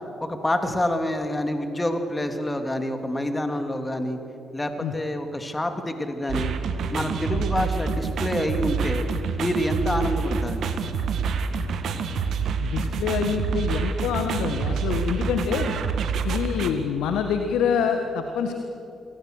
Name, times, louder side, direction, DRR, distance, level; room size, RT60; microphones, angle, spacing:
voice 1, 0.2-4.2 4.5-6.5 6.9-9.0 9.4-10.7, left 1 dB, 20° left, 6 dB, 3.1 m, -27 dB
sound 1, 6.3-16.7, right 5 dB, 60° right, 2.0 m, -27 dB
voice 2, 12.6-15.7 16.2-18.5, left 7 dB, 70° left, 6 dB, 1.6 m, -26 dB
28.0 x 23.5 x 6.7 m, 3.0 s
hypercardioid pair, 40°, 0 cm